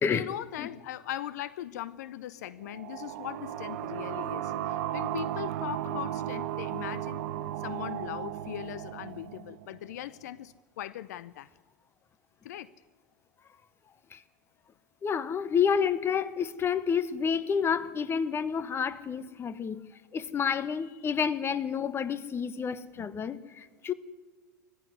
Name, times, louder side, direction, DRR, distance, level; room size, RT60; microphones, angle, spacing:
voice 1, 0.1-7.3 7.6-11.5 12.4-12.7 21.0-21.1 23.0-23.3, left 12 dB, 65° left, 0.6 m, -39 dB
sound 1, 2.6-10.0, right 12 dB, 60° right, 1.0 m, -35 dB
voice 2, 15.0-19.8 20.1-23.9, left 7 dB, 25° left, 1.2 m, -29 dB
19.5 x 15.0 x 9.6 m
hypercardioid pair, 90°, 10 cm